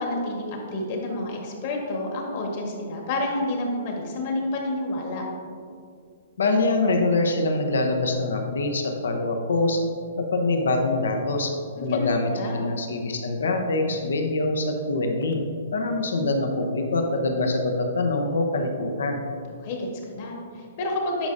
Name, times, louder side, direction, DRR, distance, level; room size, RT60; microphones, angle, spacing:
voice 1, 0.0-5.2 11.8-12.7 19.6-21.3, left 2 dB, 45° left, 0 dB, 1.4 m, -29 dB
voice 2, 6.4-9.8 10.2-11.5 11.8-15.4 15.7-19.2, left 2 dB, 85° left, 3 dB, 0.8 m, -24 dB
10.0 x 5.2 x 2.7 m, 2.2 s
hypercardioid pair, 155°, 0 cm